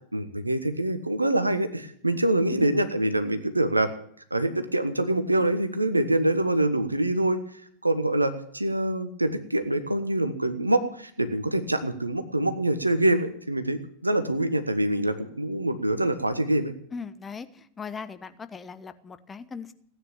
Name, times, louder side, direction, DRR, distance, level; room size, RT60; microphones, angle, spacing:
voice 1, 0.1-3.9 4.3-7.4 7.8-16.7, right 1 dB, 85° right, 10 dB, 1.3 m, -25 dB
voice 2, 16.9-19.7, left 5 dB, 15° left, 12 dB, 1.0 m, -39 dB
16.0 x 9.6 x 8.6 m, 0.64 s
figure-of-eight pair, 90°, 0 cm